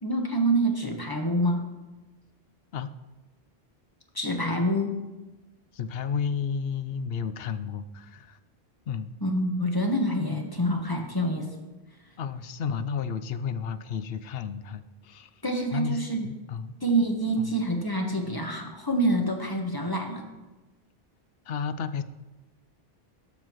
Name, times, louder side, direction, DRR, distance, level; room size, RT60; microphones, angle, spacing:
voice 1, 0.0-1.6 4.1-5.0 9.2-11.5 15.4-16.3 16.8-20.3, right 1 dB, 20° left, 3 dB, 1.3 m, -26 dB
voice 2, 5.7-8.4 8.9-9.1 12.2-15.3 15.7-16.7 17.4-17.5 21.5-22.0, left 6 dB, 70° left, 13 dB, 0.8 m, -32 dB
18.0 x 7.3 x 3.1 m, 1.1 s
omnidirectional pair, 1.1 m